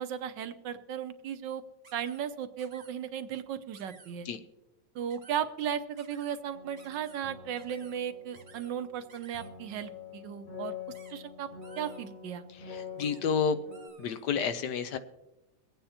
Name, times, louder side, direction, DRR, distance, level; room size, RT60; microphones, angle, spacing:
voice 1, 0.0-1.6 1.9-4.3 4.9-10.8 11.1-11.5 11.8-12.4, right 9 dB, 75° right, 10 dB, 1.4 m, -36 dB
sound 1, 1.8-2.2 2.6-3.0 3.7-4.1 5.1-5.4 6.0-6.4 6.8-7.2 7.6-8.0 8.3-8.7 9.1-9.5 10.9-11.1 11.6-12.1 13.0-13.2 13.7-14.3, right 4 dB, 35° right, 0.9 m, -55 dB
sound 2, 6.5-13.9, left 6 dB, 45° left, 2.6 m, -46 dB
voice 2, 12.5-13.6 14.0-15.0, left 6 dB, 70° left, 10 dB, 1.2 m, -30 dB
23.0 x 8.9 x 2.8 m, 0.96 s
omnidirectional pair, 2.0 m